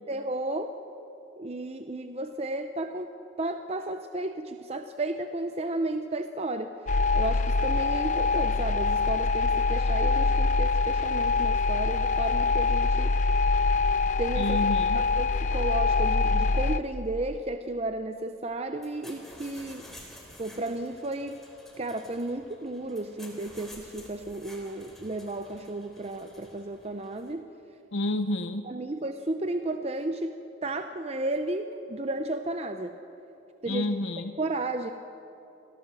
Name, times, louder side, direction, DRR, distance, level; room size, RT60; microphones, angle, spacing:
voice 1, 0.1-0.7 1.4-6.8 7.1-13.1 14.2-19.9 20.4-21.4 21.8-27.5 28.6-33.0 33.6-33.9 34.4-34.9, right 2 dB, 35° right, 7 dB, 0.7 m, -33 dB
sound 1, 6.9-16.8, left 3 dB, 40° left, 0.6 m, -24 dB
voice 2, 14.4-15.0 27.9-28.7 33.7-34.4, left 2 dB, 80° left, 9 dB, 0.8 m, -29 dB
sound 2, 18.7-27.3, left 1 dB, ahead, 3.3 m, -51 dB
25.5 x 16.5 x 7.6 m, 2.9 s
head